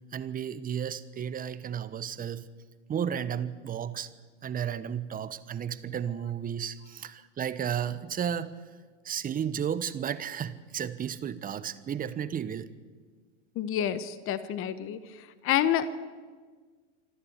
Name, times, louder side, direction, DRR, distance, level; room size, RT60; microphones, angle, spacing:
voice 1, 0.1-2.5 2.9-4.1 4.4-8.5 9.0-12.7, right 8 dB, 25° right, 14 dB, 1.0 m, -33 dB
voice 2, 13.6-15.0 15.4-15.9, left 10 dB, 35° left, 13 dB, 1.2 m, -28 dB
26.0 x 12.5 x 8.1 m, 1.5 s
hypercardioid pair, 100°, 37 cm